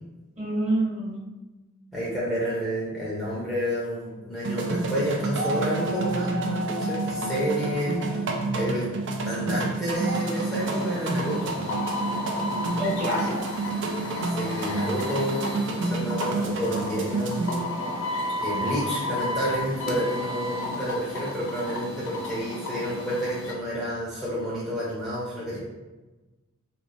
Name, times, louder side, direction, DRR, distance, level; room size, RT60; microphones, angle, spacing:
voice 1, 0.4-1.2 12.8-13.3, right 1 dB, 30° right, -6 dB, 1.1 m, -26 dB
voice 2, 1.9-8.2 8.5-8.9 9.2-11.5 14.2-17.5 18.4-25.6, equal, ahead, -8 dB, 0.6 m, -30 dB
sound 1, 4.4-17.6, right 3 dB, 60° right, 0.4 m, -29 dB
sound 2, 9.9-23.5, left 1 dB, 65° left, 0.5 m, -33 dB
3.2 x 3.0 x 2.6 m, 1.1 s
head